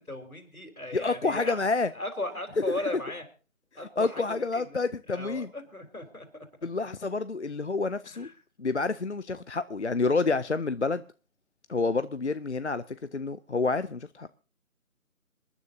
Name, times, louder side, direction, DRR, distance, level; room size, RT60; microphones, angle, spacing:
voice 1, 0.0-1.6 1.9-3.3 3.8-4.8 5.1-6.3 8.1-8.3, left 1 dB, 85° left, 3.8 m, -37 dB
voice 2, 0.9-1.9 4.0-5.5 6.6-8.3 8.6-11.0 11.7-14.4, left 3 dB, 55° left, 0.6 m, -28 dB
27.0 x 9.8 x 2.7 m
figure-of-eight pair, 165°, 42 cm